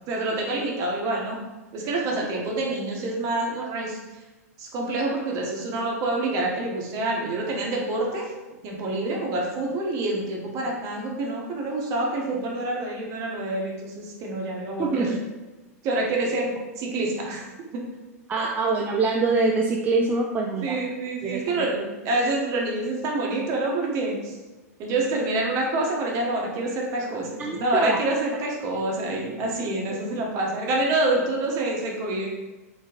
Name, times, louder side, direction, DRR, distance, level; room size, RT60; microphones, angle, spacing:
voice 1, 0.1-1.4 1.7-4.0 4.6-8.3 8.6-15.1 15.8-17.5 17.7-17.8 18.4-18.5 20.6-24.4 24.8-32.3, right 2 dB, 40° right, -1 dB, 1.0 m, -27 dB
voice 2, 14.8-15.2 18.3-20.8 21.2-21.6 27.4-28.0 29.9-30.0, right 3 dB, 20° right, -1 dB, 0.3 m, -24 dB
3.7 x 3.1 x 2.9 m, 1.2 s
hypercardioid pair, 110°, 9 cm